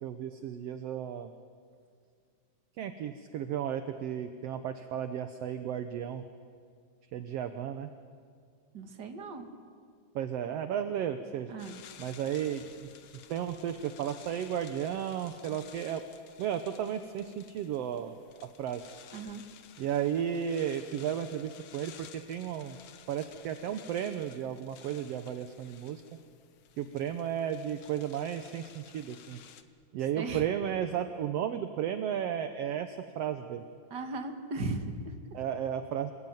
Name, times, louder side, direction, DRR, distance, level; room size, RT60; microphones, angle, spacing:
voice 1, 0.0-1.3 2.8-6.2 7.1-7.9 10.1-11.5 12.0-12.9 13.3-16.0 16.4-18.1 18.6-18.9 19.8-22.8 23.1-26.0 26.8-29.4 29.9-33.6 35.3-36.1, right 9 dB, 70° right, 8 dB, 1.6 m, -34 dB
voice 2, 8.7-9.5 11.5-11.8 19.1-19.5 30.1-30.5 33.9-35.2, right 3 dB, 40° right, 5 dB, 2.1 m, -37 dB
sound 1, 11.6-29.6, left 9 dB, 60° left, 1.4 m, -54 dB
28.0 x 19.0 x 9.2 m, 2.2 s
omnidirectional pair, 3.6 m